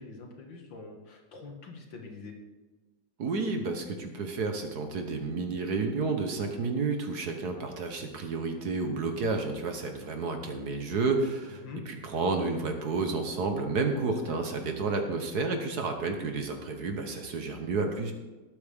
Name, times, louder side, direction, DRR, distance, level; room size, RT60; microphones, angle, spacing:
voice 1, 0.0-2.3 11.6-11.8 14.2-14.4, left 3 dB, 85° left, 2 dB, 2.5 m, -44 dB
voice 2, 3.2-18.1, right 3 dB, 60° right, 5 dB, 1.6 m, -31 dB
19.5 x 8.4 x 3.6 m, 1.2 s
omnidirectional pair, 2.0 m